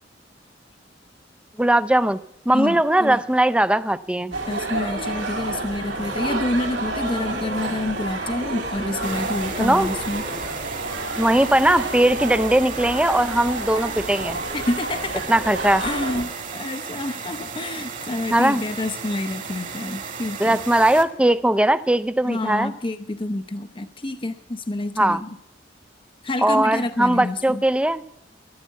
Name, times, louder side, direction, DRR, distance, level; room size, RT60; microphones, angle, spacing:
voice 1, 1.6-2.2 2.5-4.4 9.6-9.9 11.2-14.4 15.3-15.8 18.3-18.6 20.4-22.7 25.0-25.2 26.4-28.0, right 1 dB, 5° right, 14 dB, 0.5 m, -19 dB
voice 2, 2.5-3.2 4.4-10.2 14.5-15.3 15.8-20.6 22.2-25.3 26.2-27.6, left 2 dB, 30° left, 8 dB, 0.7 m, -28 dB
sound 1, 4.3-16.2, right 2 dB, 85° right, 4.1 m, -30 dB
sound 2, 9.0-21.0, right 5 dB, 45° right, 1.8 m, -35 dB
13.5 x 11.5 x 8.2 m, 0.78 s
head